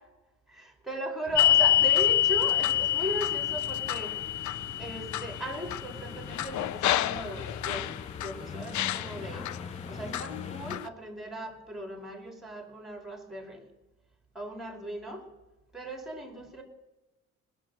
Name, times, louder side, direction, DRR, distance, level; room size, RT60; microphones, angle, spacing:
voice 1, 0.5-4.2 4.8-7.9 8.2-9.5 9.9-13.7 14.3-15.3 15.7-16.6, right 1 dB, ahead, 4 dB, 2.9 m, -38 dB
sound 1, 1.3-10.8, left 5 dB, 20° left, 0.7 m, -42 dB
sound 2, 1.4-8.3 8.7-9.6 10.1-10.9, left 12 dB, 70° left, 0.5 m, -27 dB
20.0 x 6.9 x 6.2 m, 1.0 s
cardioid pair, 90°, 30 cm